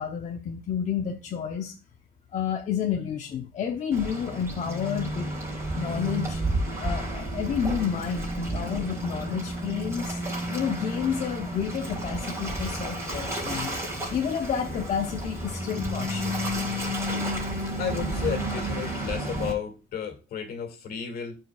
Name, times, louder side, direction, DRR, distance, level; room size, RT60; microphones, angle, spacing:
voice 1, 0.0-1.7 2.3-5.3 5.7-6.4 6.8-10.2 10.5-16.3, left 8 dB, 45° left, 0.8 m, -30 dB
Waves surf, 3.9-19.5, right 1 dB, 15° right, 4.2 m, -31 dB
voice 2, 17.8-21.4, left 7 dB, 65° left, 2.0 m, -33 dB
14.0 x 4.6 x 2.3 m
cardioid pair, 110°, 17 cm